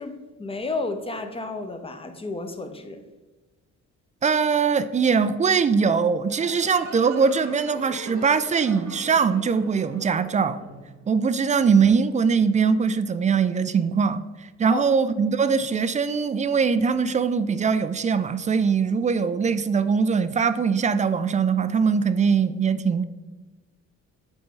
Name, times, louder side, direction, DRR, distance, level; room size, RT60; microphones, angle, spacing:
voice 1, 0.0-3.0 14.7-14.8, left 3 dB, 20° left, 7 dB, 0.7 m, -32 dB
voice 2, 4.2-10.6 11.1-14.2 14.6-23.0, right 5 dB, 25° right, 12 dB, 0.3 m, -21 dB
sound 1, 6.3-11.5, right 4 dB, 65° right, 1.0 m, -41 dB
7.8 x 4.1 x 3.8 m, 1.2 s
cardioid pair, 90°, 30 cm